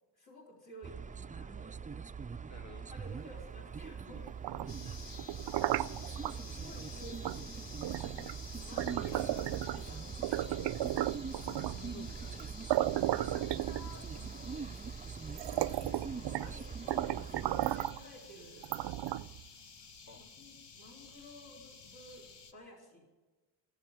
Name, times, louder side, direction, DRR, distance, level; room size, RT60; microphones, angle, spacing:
voice 1, 0.1-1.8 2.9-4.3 5.8-7.8 8.4-10.7 13.1-14.6 15.3-18.7 20.2-23.1, equal, 60° left, -3 dB, 4.2 m, -54 dB
sound 1, 0.8-17.8, right 6 dB, 20° right, 0.4 m, -43 dB
voice 2, 2.5-3.2 5.0-5.1 6.8-7.0 8.6-9.5 11.3-12.7 20.1-20.2, left 2 dB, 40° left, 4 dB, 1.8 m, -54 dB
sound 2, 4.3-6.4 7.2-7.4 7.8-9.9 10.2-11.9 12.4-12.5 12.7-14.2 14.9-15.0 15.3-16.6 16.9-18.0 18.6-19.4, right 14 dB, 75° right, 0.5 m, -34 dB
sound 3, 4.7-22.5, left 4 dB, 80° left, 1.4 m, -52 dB
19.0 x 7.0 x 9.0 m, 1.2 s
cardioid pair, 90°, 42 cm